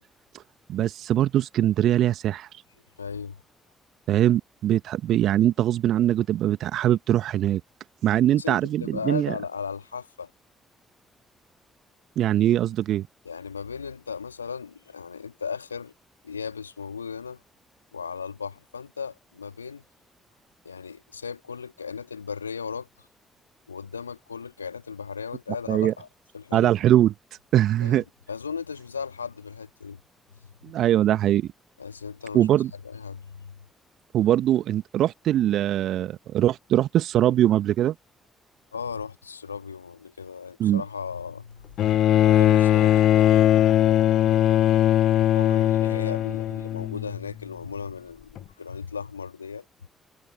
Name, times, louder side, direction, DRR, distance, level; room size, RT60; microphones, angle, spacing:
voice 1, 0.7-2.5 4.1-7.6 8.0-9.3 12.2-13.0 25.7-25.9 26.5-27.1 27.5-28.0 30.6-31.5 32.3-32.7 34.1-37.9 40.6-40.8, right 12 dB, 60° right, 1.5 m, -22 dB
voice 2, 3.0-3.4 8.3-10.3 13.2-15.9 16.2-17.4 17.9-19.8 20.6-23.1 23.7-26.1 26.3-26.7 27.8-30.0 30.3-30.8 31.8-32.5 32.8-33.6 38.7-44.6 45.0-49.6, left 6 dB, 85° left, 2.5 m, -36 dB
Bowed string instrument, 41.8-47.2 48.4-48.5, left 12 dB, 60° left, 0.6 m, -20 dB
figure-of-eight pair, 40°, 0 cm